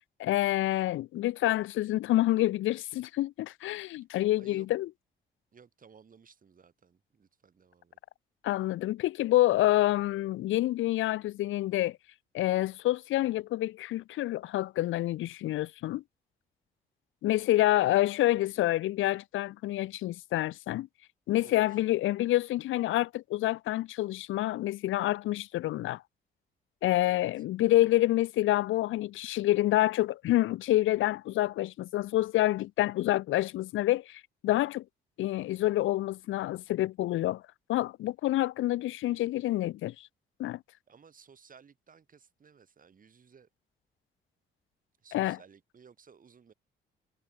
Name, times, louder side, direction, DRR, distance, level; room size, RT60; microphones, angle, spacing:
voice 1, 0.2-4.9 8.4-12.0 12.3-16.0 17.2-20.9 21.3-26.0 26.8-34.8 35.2-37.4 37.7-40.1 40.4-40.6 45.1-45.4, left 15 dB, 80° left, 0.9 m, -27 dB
voice 2, 4.4-4.7 5.5-8.0 21.4-21.8 27.0-27.3 40.9-43.5 45.0-46.5, right 6 dB, 45° right, 7.6 m, -57 dB
cardioid pair, 90°, 20 cm